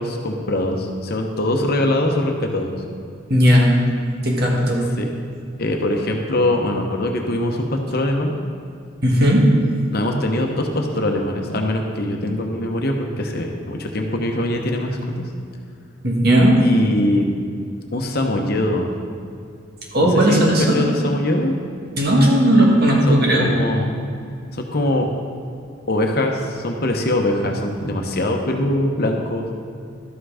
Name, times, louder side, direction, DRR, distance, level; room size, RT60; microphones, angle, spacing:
voice 1, 0.0-2.8 5.0-5.1 5.6-8.3 9.9-15.3 16.6-17.2 17.9-18.9 20.0-21.5 23.1-24.0 24.5-25.1 25.9-29.5, left 1 dB, 50° left, 2 dB, 1.0 m, -22 dB
voice 2, 3.3-3.7 4.2-4.8 9.0-9.5 16.0-16.6 19.9-20.8 22.0-23.5, equal, 55° right, -2 dB, 1.8 m, -15 dB
12.5 x 5.8 x 5.0 m, 2.3 s
head